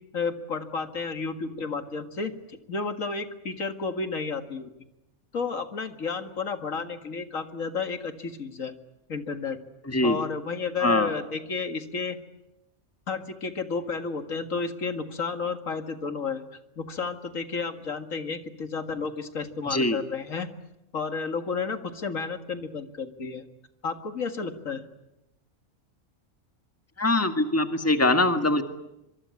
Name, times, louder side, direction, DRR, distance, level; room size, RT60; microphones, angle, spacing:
voice 1, 0.1-4.7 5.3-8.7 9.1-9.6 10.0-12.2 13.1-16.4 16.8-20.5 20.9-23.4 23.8-24.8, left 5 dB, 80° left, 8 dB, 2.3 m, -32 dB
voice 2, 9.9-10.2 10.8-11.1 19.7-20.0 27.0-28.6, left 2 dB, 10° left, 7 dB, 1.8 m, -23 dB
25.5 x 23.5 x 9.6 m, 0.90 s
omnidirectional pair, 1.3 m